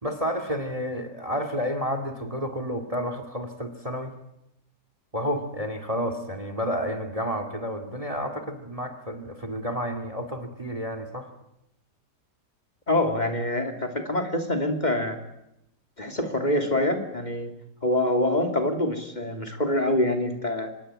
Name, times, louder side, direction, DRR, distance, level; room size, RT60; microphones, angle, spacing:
voice 1, 0.0-4.1 5.1-11.3, equal, 20° right, 10 dB, 2.3 m, -30 dB
voice 2, 12.9-15.2 16.0-17.5 17.8-20.7, left 1 dB, 25° left, 5 dB, 2.9 m, -25 dB
25.5 x 21.0 x 9.0 m, 0.83 s
omnidirectional pair, 1.8 m